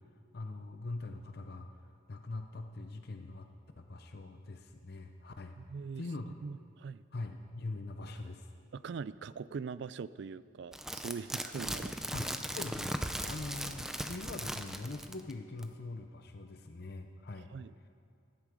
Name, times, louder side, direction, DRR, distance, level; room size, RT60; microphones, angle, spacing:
voice 1, 0.3-1.7 2.1-3.5 3.8-5.5 6.0-6.3 7.1-8.5 12.1-12.9 13.2-17.5, left 2 dB, 50° left, 6 dB, 0.6 m, -42 dB
voice 2, 5.6-7.0 8.7-12.0 17.5-17.7, right 5 dB, 60° right, 17 dB, 0.3 m, -42 dB
sound 1, 10.7-15.3 15.6-15.7, right 1 dB, ahead, 0.5 m, -38 dB
16.5 x 12.5 x 4.9 m, 2.4 s
head